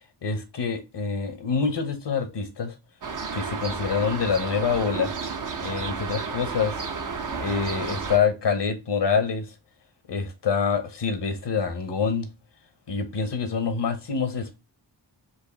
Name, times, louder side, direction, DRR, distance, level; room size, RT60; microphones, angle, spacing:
voice 1, 0.2-2.7 3.3-5.1 5.6-6.8 7.4-9.5 10.1-12.3 12.9-14.6, left 5 dB, 65° left, 1.1 m, -26 dB
sound 1, 3.0-8.2, right 5 dB, 45° right, 0.8 m, -32 dB
4.6 x 2.6 x 3.8 m
cardioid pair, 50°, 45 cm